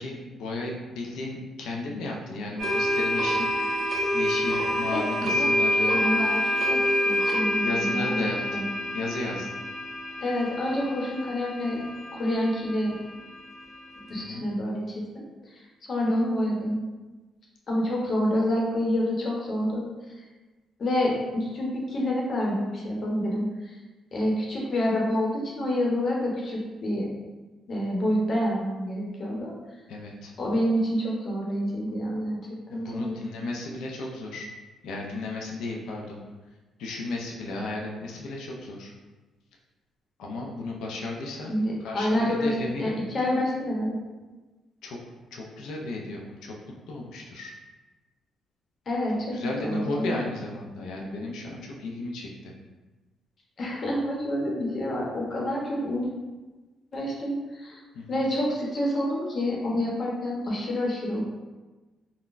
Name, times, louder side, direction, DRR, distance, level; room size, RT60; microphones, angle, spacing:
voice 1, 0.0-3.5 4.1-6.0 7.6-8.7 8.9-9.6 14.1-14.5 29.9-30.3 32.7-34.5 34.8-36.2 36.8-38.9 40.2-41.6 41.8-43.0 44.8-45.0 45.3-46.6 46.9-47.5 49.3-52.5 57.9-58.2, left 2 dB, 85° left, -1 dB, 0.4 m, -34 dB
sound 1, 2.6-14.2, equal, 55° right, 0.7 m, -27 dB
voice 2, 5.3-8.7 10.2-11.8 12.1-12.9 14.1-15.2 15.5-15.6 15.9-16.8 17.7-19.8 20.1-20.2 20.8-23.8 24.1-27.1 27.7-29.5 30.4-32.4 32.7-33.1 41.5-44.0 48.9-50.2 53.6-56.1 56.9-57.8 58.1-61.2, left 1 dB, 45° left, -3 dB, 0.9 m, -28 dB
3.8 x 2.2 x 2.5 m, 1.2 s
cardioid pair, 90°, 0 cm